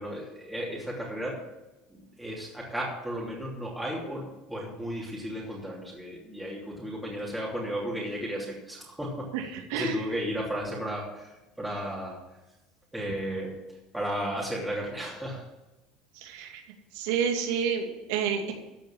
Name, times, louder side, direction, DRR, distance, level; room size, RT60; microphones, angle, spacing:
voice 1, 0.0-1.4 1.9-9.3 9.7-12.2 12.9-15.4, equal, 5° right, -5 dB, 3.0 m, -34 dB
voice 2, 16.2-16.6 16.9-18.5, right 6 dB, 80° right, 2 dB, 2.5 m, -29 dB
14.0 x 5.1 x 8.9 m, 1.0 s
supercardioid pair, 120°, 0 cm